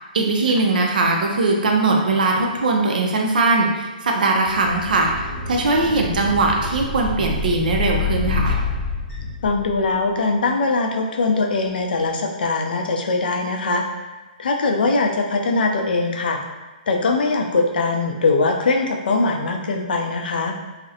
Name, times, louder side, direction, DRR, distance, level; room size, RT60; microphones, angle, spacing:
voice 1, 0.1-8.5, right 3 dB, 60° right, 1 dB, 0.5 m, -20 dB
sound 1, 4.4-10.0, left 3 dB, ahead, 0.9 m, -27 dB
voice 2, 6.0-6.3 9.4-13.8 14.4-16.4 16.9-20.5, left 3 dB, 75° left, 2 dB, 0.4 m, -21 dB
2.4 x 2.0 x 2.7 m, 1.2 s
hypercardioid pair, 175°, 5 cm